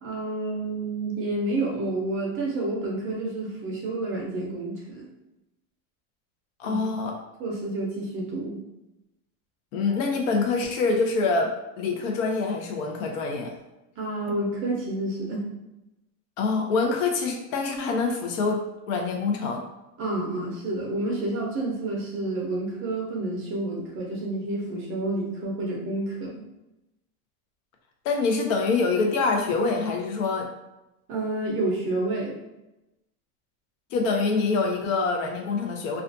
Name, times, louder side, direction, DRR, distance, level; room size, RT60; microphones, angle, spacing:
voice 1, 0.0-5.1 6.6-6.8 7.4-8.6 14.0-15.5 20.0-26.4 31.1-32.4, right 2 dB, 30° right, -2 dB, 0.5 m, -29 dB
voice 2, 6.6-7.2 9.7-13.5 14.3-14.4 16.4-19.6 28.0-30.5 33.9-36.0, left 4 dB, 65° left, 3 dB, 0.6 m, -25 dB
2.4 x 2.3 x 2.5 m, 0.95 s
supercardioid pair, 140°, 43 cm